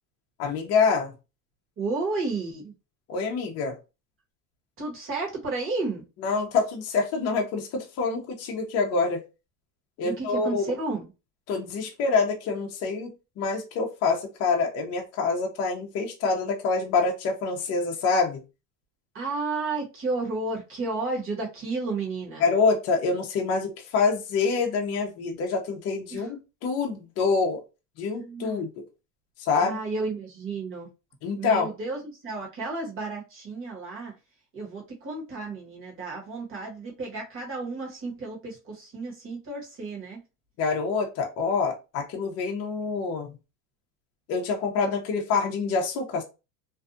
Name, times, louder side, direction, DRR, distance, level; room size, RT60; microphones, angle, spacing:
voice 1, 0.4-1.1 3.1-3.8 6.2-9.2 10.0-10.6 11.5-18.4 22.4-27.6 28.0-28.7 29.4-29.8 31.2-31.7 40.6-43.3 44.3-46.2, left 4 dB, 35° left, 0.6 m, -26 dB
voice 2, 1.8-2.7 4.8-6.0 10.0-11.1 19.1-22.5 26.1-26.3 28.2-28.6 29.6-30.9 31.4-34.1 34.5-40.2, right 3 dB, 30° right, 1.1 m, -32 dB
2.6 x 2.3 x 2.4 m
cardioid pair, 140°, 43 cm